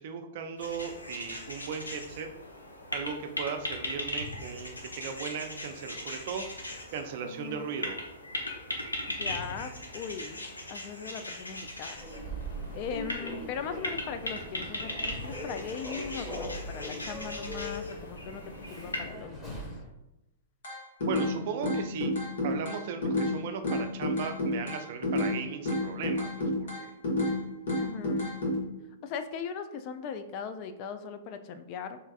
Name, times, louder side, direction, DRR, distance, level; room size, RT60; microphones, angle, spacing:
voice 1, 0.0-2.3 2.9-6.4 6.9-8.0 21.0-22.1 22.4-26.3 26.8-26.9, right 6 dB, 55° right, 6 dB, 0.4 m, -37 dB
sound 1, 0.6-19.0, left 1 dB, 90° left, 0.6 m, -39 dB
voice 2, 7.2-7.8 9.1-12.0 12.7-18.4 18.7-19.5 27.8-28.3 29.0-32.0, left 6 dB, 40° left, 9 dB, 0.3 m, -39 dB
Human voice / Subway metro underground, 11.9-19.9, equal, 10° left, 1.1 m, -41 dB
sound 2, 20.6-21.3 21.6-23.3 23.6-25.4 25.7-27.4 27.7-28.6, left 1 dB, 70° left, 1.3 m, -29 dB
3.4 x 3.1 x 2.3 m, 0.93 s
figure-of-eight pair, 110°, 0 cm